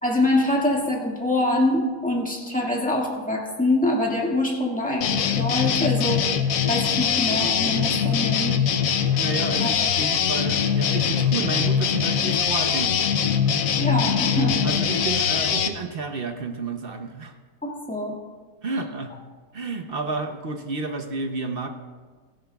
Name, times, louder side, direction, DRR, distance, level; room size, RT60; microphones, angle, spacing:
voice 1, 0.0-6.2 6.7-8.7 9.6-9.9 13.8-14.6 17.6-18.2, left 1 dB, 5° left, -2 dB, 1.8 m, -24 dB
sound 1, 5.0-15.7, left 7 dB, 70° left, 1.0 m, -22 dB
voice 2, 9.2-12.9 14.6-17.3 18.6-19.1 19.5-21.7, right 4 dB, 45° right, 5 dB, 0.8 m, -31 dB
17.0 x 15.0 x 2.3 m, 1.4 s
omnidirectional pair, 1.6 m